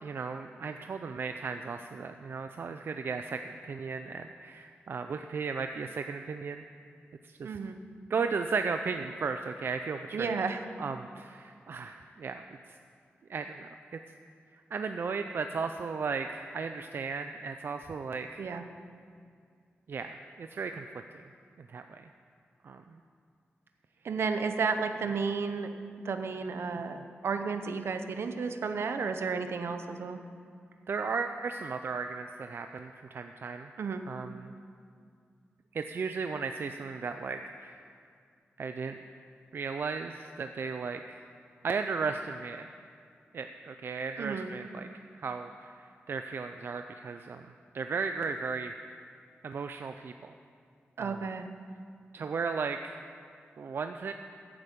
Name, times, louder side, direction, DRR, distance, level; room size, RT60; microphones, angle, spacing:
voice 1, 0.0-6.7 7.2-7.6 8.1-12.4 13.3-14.0 14.7-18.4 19.9-21.2 21.7-22.1 22.6-23.0 30.9-33.7 34.1-34.5 35.7-37.8 38.6-39.0 39.5-41.2 41.6-42.7 43.3-44.9 45.1-47.5 47.7-48.7 49.4-50.3 51.0-51.2 52.1-53.0 53.6-54.1, right 5 dB, 60° right, 7 dB, 0.4 m, -35 dB
voice 2, 7.4-7.8 10.1-10.6 18.4-18.6 24.0-25.7 26.0-30.2 33.8-34.0 44.2-44.5 51.0-51.5, right 5 dB, 75° right, 8 dB, 0.8 m, -32 dB
15.0 x 8.7 x 5.2 m, 2.3 s
wide cardioid pair, 155°, 4 cm